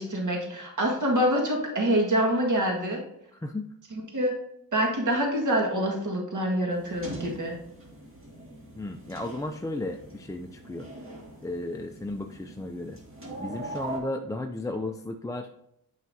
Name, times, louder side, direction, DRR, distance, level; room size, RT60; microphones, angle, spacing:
voice 1, 0.0-3.0 3.9-4.3 4.7-7.6, equal, 55° right, 0 dB, 1.8 m, -26 dB
voice 2, 3.3-3.6 8.8-10.9 11.4-13.0 13.4-15.5, left 2 dB, 10° left, 4 dB, 0.3 m, -34 dB
sound 1, 6.7-14.0, right 2 dB, 35° right, 2.2 m, -42 dB
9.4 x 5.7 x 2.7 m, 0.77 s
wide cardioid pair, 130°, 36 cm